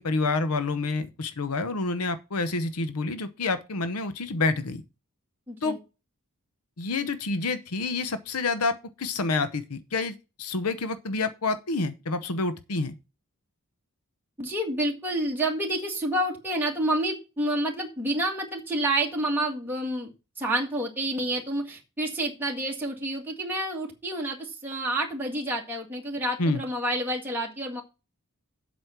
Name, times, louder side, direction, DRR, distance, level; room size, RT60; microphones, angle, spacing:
voice 1, 0.0-4.8 5.6-5.8 6.8-12.9 26.4-26.6, left 3 dB, 85° left, 0.9 m, -28 dB
voice 2, 5.5-5.8 14.4-27.8, right 1 dB, 10° right, 2.0 m, -29 dB
8.0 x 6.3 x 5.9 m
head